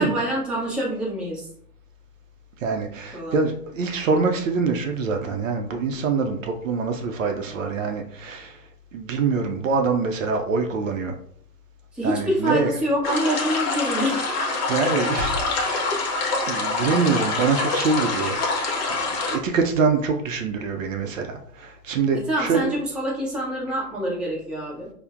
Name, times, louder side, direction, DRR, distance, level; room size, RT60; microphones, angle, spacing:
voice 1, 0.0-1.5 3.1-3.4 11.9-14.4 22.2-24.9, equal, ahead, 0.7 m, -26 dB
voice 2, 2.6-8.6 8.9-11.2 12.0-12.7 14.7-15.9 16.5-18.4 18.9-22.7, right 4 dB, 55° right, 0.5 m, -25 dB
sound 1, 13.0-19.4, left 3 dB, 40° left, 0.8 m, -25 dB
4.2 x 2.1 x 2.4 m
figure-of-eight pair, 110°, 47 cm